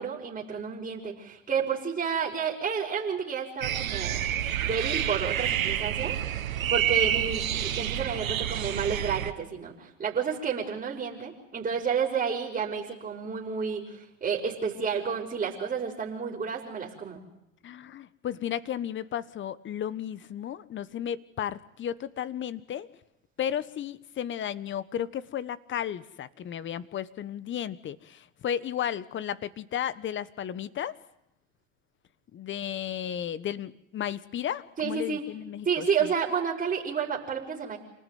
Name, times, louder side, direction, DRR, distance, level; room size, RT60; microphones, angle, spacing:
voice 1, 0.0-4.2 4.6-6.2 6.7-17.2 34.8-35.2 35.6-37.8, right 6 dB, 20° right, -1 dB, 5.6 m, -30 dB
sound 1, 3.6-9.3, right 10 dB, 90° right, 1.7 m, -28 dB
voice 2, 17.6-22.9 23.4-30.9 32.3-35.9, left 10 dB, 30° left, 17 dB, 1.4 m, -34 dB
28.0 x 19.0 x 9.5 m, 0.85 s
hypercardioid pair, 105°, 40 cm